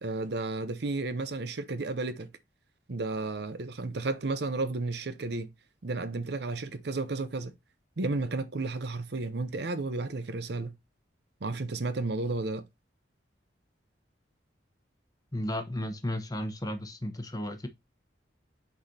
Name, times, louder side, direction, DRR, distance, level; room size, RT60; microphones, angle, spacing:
voice 1, 0.0-2.3 2.9-5.5 5.8-7.5 8.0-10.7 11.4-12.6, right 3 dB, 60° right, 0.7 m, -32 dB
voice 2, 15.3-17.7, left 1 dB, 20° left, 0.9 m, -34 dB
9.2 x 4.2 x 2.7 m
head